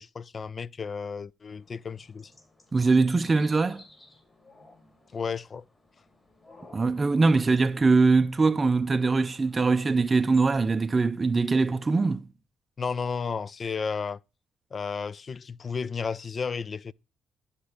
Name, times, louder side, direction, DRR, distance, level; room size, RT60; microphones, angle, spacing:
voice 1, 0.0-2.3 5.1-5.6 12.8-14.2 14.7-16.9, left 5 dB, 40° left, 0.3 m, -33 dB
sound 1, 1.5-11.1, left 2 dB, 25° left, 3.9 m, -56 dB
voice 2, 2.7-3.8 6.7-12.3, right 3 dB, 25° right, 0.4 m, -22 dB
11.5 x 4.4 x 4.9 m
cardioid pair, 95°, 0 cm